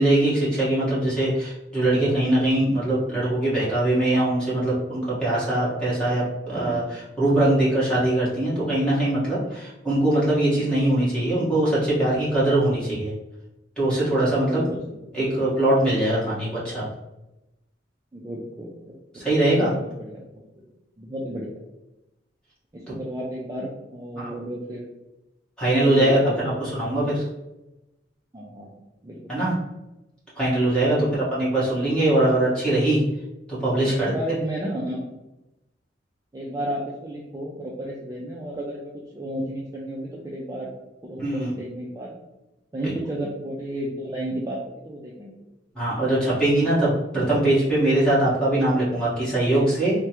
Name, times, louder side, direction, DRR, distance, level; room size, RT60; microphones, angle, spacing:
voice 1, 0.0-13.1 13.8-14.6 15.1-16.9 19.1-19.7 24.2-24.3 25.6-27.3 29.3-29.5 30.3-31.0 31.3-33.0 33.6-34.1 41.2-41.6 42.8-42.9 45.7-49.9, right 1 dB, 5° left, -9 dB, 1.3 m, -22 dB
voice 2, 6.5-6.9 10.9-11.5 14.4-15.0 16.2-16.4 18.1-19.3 19.7-20.6 21.0-21.5 22.7-24.9 25.8-26.6 28.3-28.8 29.0-29.4 30.8-31.3 33.8-35.0 36.3-40.7 41.0-42.1 42.7-45.3, right 1 dB, 20° right, -3 dB, 0.3 m, -33 dB
3.3 x 2.1 x 2.9 m, 0.96 s
head